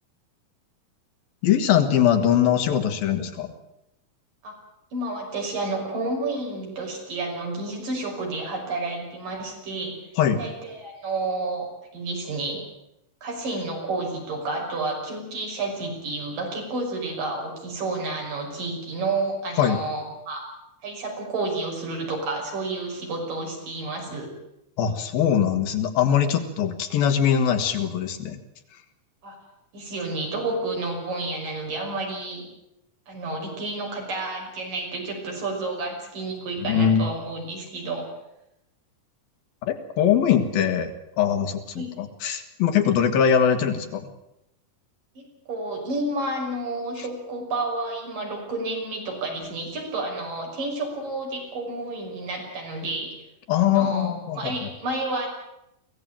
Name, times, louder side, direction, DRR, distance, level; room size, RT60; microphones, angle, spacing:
voice 1, 1.4-3.5 10.2-10.4 19.6-19.8 24.8-28.4 36.6-37.1 39.6-40.9 41.2-44.1 53.5-54.7, left 8 dB, 85° left, 6 dB, 3.6 m, -22 dB
voice 2, 4.9-10.0 10.4-11.7 11.9-12.6 13.2-20.4 20.8-24.3 29.2-29.4 29.7-32.5 33.1-38.1 41.8-41.9 45.2-53.1 53.6-55.3, right 2 dB, 65° right, 1 dB, 7.3 m, -30 dB
22.5 x 17.0 x 9.0 m, 0.85 s
omnidirectional pair, 4.1 m